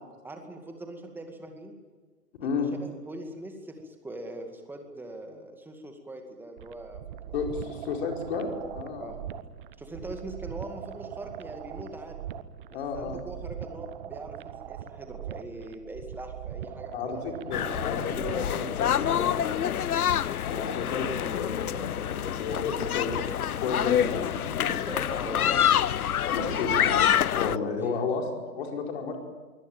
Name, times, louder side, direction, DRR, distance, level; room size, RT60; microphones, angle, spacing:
voice 1, 0.0-1.8 2.4-7.3 7.6-7.8 9.0-9.2 9.8-12.2 12.7-17.6 24.9-25.6 26.4-27.0 27.8-28.0, right 1 dB, 5° right, 4 dB, 2.1 m, -42 dB
sound 1, 6.6-18.6, right 10 dB, 30° right, 1.0 m, -41 dB
voice 2, 7.3-9.1 12.7-13.2 16.9-17.2 17.4-19.8 20.4-24.8 26.3-29.2, left 5 dB, 40° left, 2 dB, 5.0 m, -33 dB
sound 2, 17.5-27.6, left 10 dB, 65° left, 0.8 m, -27 dB
23.5 x 17.0 x 9.0 m, 1.4 s
figure-of-eight pair, 135°, 48 cm